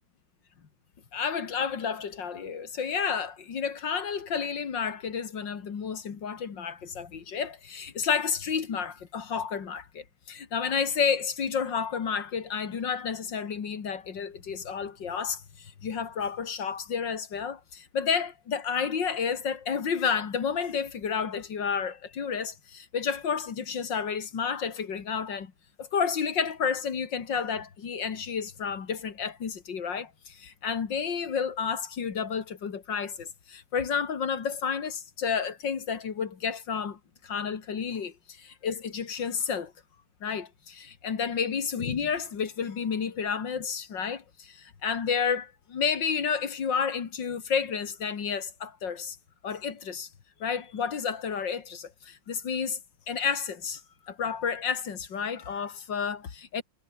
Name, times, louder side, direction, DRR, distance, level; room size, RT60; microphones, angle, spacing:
voice 1, 1.1-25.5 25.8-38.1 38.4-39.7 40.2-49.2 49.4-50.1 50.4-52.8 53.1-53.8 54.1-56.6, left 6 dB, 85° left, 2.8 m, -31 dB
omnidirectional pair, 1.9 m